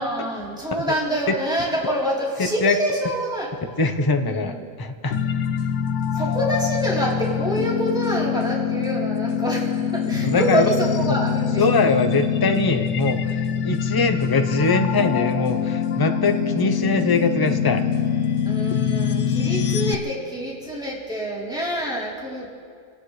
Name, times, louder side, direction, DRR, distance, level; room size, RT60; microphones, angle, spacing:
voice 1, 0.0-3.5 4.3-4.5 6.1-11.6 18.5-22.5, right 1 dB, 5° right, -6 dB, 3.5 m, -26 dB
voice 2, 2.4-2.8 3.8-5.1 10.2-10.7 11.1-11.2 11.6-17.8, left 3 dB, 20° left, 6 dB, 0.6 m, -22 dB
sound 1, 5.1-19.9, left 7 dB, 60° left, 0.9 m, -24 dB
27.0 x 16.5 x 3.2 m, 2.2 s
omnidirectional pair, 1.6 m